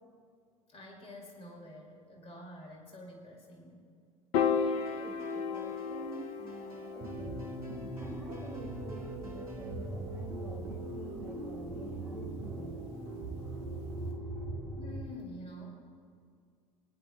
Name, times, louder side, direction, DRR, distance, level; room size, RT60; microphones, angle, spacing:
voice 1, 0.7-3.8 14.8-15.8, equal, 30° left, 0 dB, 2.5 m, -48 dB
Piano, 4.3-10.7, left 6 dB, 50° left, 0.7 m, -36 dB
voice 2, 4.3-7.4 7.9-12.9, right 2 dB, ahead, -8 dB, 3.4 m, -48 dB
sound 1, 4.9-9.8, right 1 dB, 85° right, 1.2 m, -56 dB
sound 2, 7.0-15.0, right 2 dB, 60° right, 1.9 m, -40 dB
22.0 x 10.5 x 2.3 m, 2.2 s
figure-of-eight pair, 70°, 18 cm